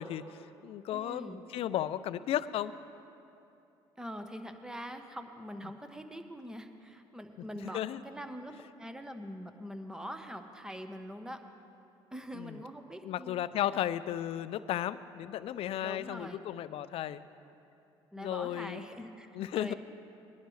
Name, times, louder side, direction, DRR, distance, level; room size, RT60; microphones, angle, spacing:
voice 1, 0.0-2.7 7.7-8.0 12.4-12.6 13.0-17.2 18.2-18.9 19.3-19.7, left 11 dB, 60° left, 15 dB, 0.5 m, -34 dB
voice 2, 0.9-1.4 4.0-8.5 8.8-11.4 12.1-13.4 15.8-16.4 18.1-19.7, equal, 5° right, 6 dB, 1.0 m, -43 dB
20.0 x 11.5 x 3.2 m, 2.7 s
supercardioid pair, 70°, 11 cm